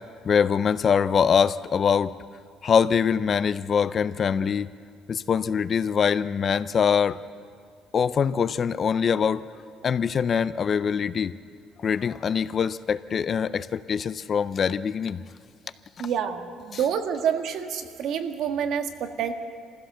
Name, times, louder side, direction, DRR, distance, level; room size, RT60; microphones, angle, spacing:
voice 1, 0.2-2.1 2.6-4.7 5.1-7.2 7.9-9.4 9.8-11.3 11.8-15.2, left 7 dB, 35° left, 15 dB, 0.4 m, -23 dB
voice 2, 16.0-19.3, right 8 dB, 60° right, 6 dB, 1.6 m, -28 dB
25.5 x 15.5 x 6.8 m, 2.3 s
cardioid pair, 160°, 0 cm